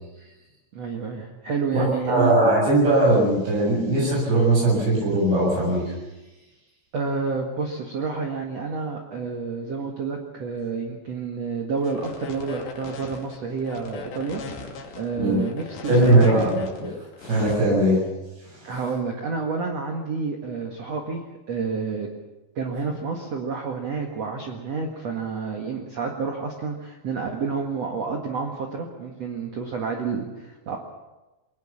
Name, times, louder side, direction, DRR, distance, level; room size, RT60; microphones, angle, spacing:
voice 1, 0.7-2.3 6.9-14.4 15.0-16.5 18.6-22.1 22.6-30.8, right 5 dB, 50° right, 1 dB, 2.3 m, -29 dB
voice 2, 1.7-5.9 15.2-15.4 15.9-16.6 17.2-18.0, right 1 dB, 75° right, -3 dB, 9.5 m, -19 dB
sound 1, 11.8-17.6, left 4 dB, 80° left, 4.9 m, -38 dB
23.5 x 19.0 x 7.3 m, 1.1 s
omnidirectional pair, 5.0 m